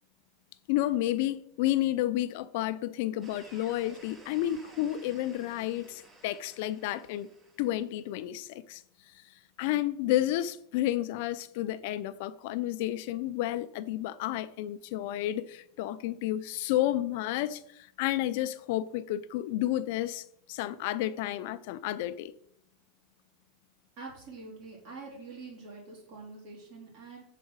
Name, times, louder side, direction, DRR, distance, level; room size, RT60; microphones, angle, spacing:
voice 1, 0.7-7.3 7.6-8.8 9.6-22.3, left 14 dB, 50° left, 0.4 m, -31 dB
sound 1, 3.2-8.2, right 2 dB, 15° right, 0.9 m, -55 dB
voice 2, 24.0-27.2, right 3 dB, 45° right, 3.6 m, -45 dB
7.2 x 4.8 x 6.4 m
supercardioid pair, 175°, 0 cm